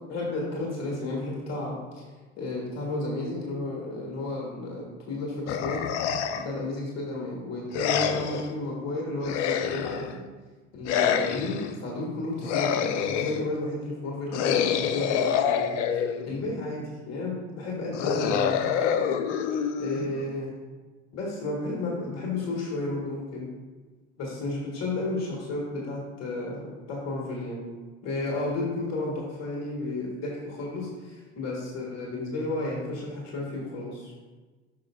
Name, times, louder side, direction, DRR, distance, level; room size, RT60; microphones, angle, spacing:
voice 1, 0.1-2.1 2.4-5.8 6.4-10.2 10.7-15.8 16.3-18.6 19.8-20.5 21.1-23.5 24.2-27.6 28.0-34.1, left 2 dB, 50° left, -3 dB, 1.7 m, -32 dB
sound 1, 5.5-6.6 7.7-8.5 9.2-10.2 10.8-11.7 12.4-13.5 14.3-16.4 17.9-20.3, left 8 dB, 75° left, 0.6 m, -27 dB
8.4 x 5.4 x 2.3 m, 1.3 s
hypercardioid pair, 70°, 36 cm